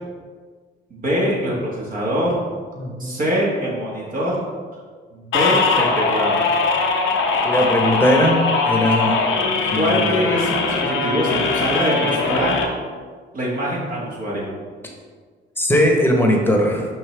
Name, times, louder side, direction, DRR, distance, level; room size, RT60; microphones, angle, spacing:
voice 1, 0.9-2.4 3.0-4.4 5.1-6.4 9.7-12.5 13.3-14.5, equal, 45° right, -5 dB, 1.7 m, -23 dB
voice 2, 2.8-3.2 7.4-9.2 9.7-10.0 15.6-16.9, equal, 10° left, 0 dB, 1.2 m, -19 dB
sound 1, 5.3-12.7, left 4 dB, 80° left, 0.9 m, -21 dB
5.6 x 5.3 x 3.4 m, 1.5 s
cardioid pair, 90°, 20 cm